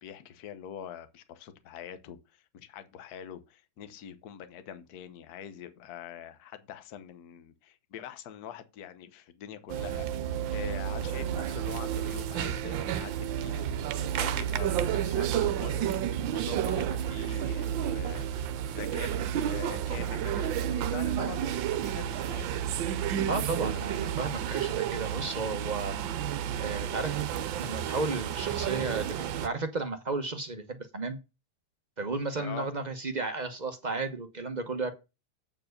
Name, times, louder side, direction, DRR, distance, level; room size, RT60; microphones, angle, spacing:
voice 1, 0.0-13.7 14.1-18.3 18.5-19.1 19.4-22.5 32.4-32.7, left 9 dB, 55° left, 1.2 m, -44 dB
sound 1, 9.7-29.5, right 10 dB, 75° right, 1.4 m, -31 dB
voice 2, 23.3-26.0 26.6-27.2 27.6-31.2 32.0-34.9, right 3 dB, 45° right, 0.5 m, -33 dB
8.7 x 4.7 x 6.4 m
omnidirectional pair, 2.2 m